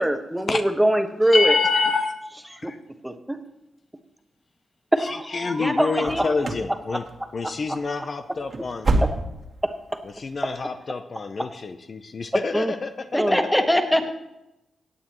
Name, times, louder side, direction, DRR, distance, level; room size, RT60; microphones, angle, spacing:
voice 1, 0.0-1.6 2.6-2.7 3.0-3.4 4.9-6.3 6.9-7.0 7.4-7.5 9.0-9.1 9.6-9.7 12.5-12.7 13.2-13.4, right 1 dB, 10° right, 7 dB, 1.1 m, -23 dB
voice 2, 1.3-2.2 2.5-2.8 5.0-7.0 7.3-8.9 10.2-13.1, left 4 dB, 55° left, 8 dB, 0.7 m, -27 dB
voice 3, 5.6-6.2 13.1-14.1, equal, 5° left, 5 dB, 1.6 m, -22 dB
sound 1, 6.0-6.7 7.0-7.4 7.7-7.9 8.3-9.6 9.9-10.0 10.5-10.6, right 2 dB, 50° right, 1.6 m, -26 dB
16.5 x 8.6 x 3.1 m, 0.90 s
supercardioid pair, 45°, 0 cm